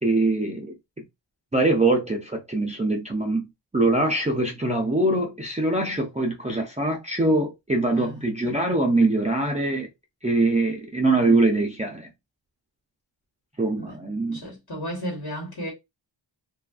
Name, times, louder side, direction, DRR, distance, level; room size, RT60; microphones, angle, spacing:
voice 1, 0.0-0.7 1.5-3.5 3.7-9.9 10.2-12.1 13.6-14.4, right 2 dB, 15° right, 0.4 m, -23 dB
voice 2, 7.9-8.2 13.8-14.0 14.3-15.7, equal, 55° left, 1.3 m, -34 dB
2.7 x 2.4 x 2.3 m
wide cardioid pair, 100°, 46 cm